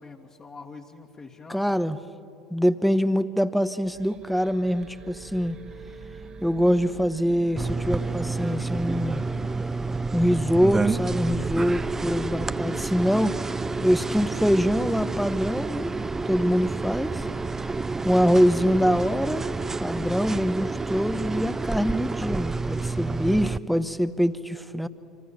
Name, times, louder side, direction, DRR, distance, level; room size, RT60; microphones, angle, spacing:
voice 1, 0.0-1.7, left 4 dB, 30° left, -1 dB, 2.0 m, -45 dB
voice 2, 1.5-2.0 2.5-5.6 6.4-9.2 10.1-13.4 13.8-15.9 16.3-17.3 18.0-19.5 19.8-24.9, equal, ahead, 13 dB, 1.0 m, -24 dB
sound 1, 3.8-21.3, right 4 dB, 35° right, 1.8 m, -43 dB
sound 2, 7.6-23.6, right 3 dB, 15° right, 0.5 m, -29 dB
26.0 x 25.5 x 7.3 m, 2.8 s
hypercardioid pair, 70°, 2 cm